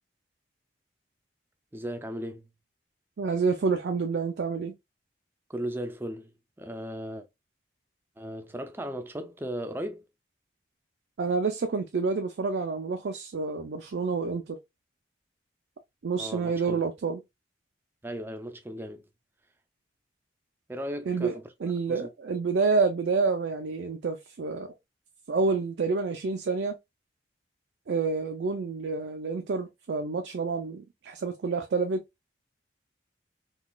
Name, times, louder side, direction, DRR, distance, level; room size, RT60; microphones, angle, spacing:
voice 1, 1.7-2.5 5.5-7.3 8.2-10.0 16.2-16.8 18.0-19.0 20.7-21.4 21.9-22.1, equal, 10° right, 0.4 m, -36 dB
voice 2, 3.2-4.7 11.2-14.6 16.0-17.2 21.1-24.7 25.3-26.8 27.9-32.0, right 4 dB, 70° right, 0.4 m, -28 dB
3.9 x 2.3 x 2.3 m
head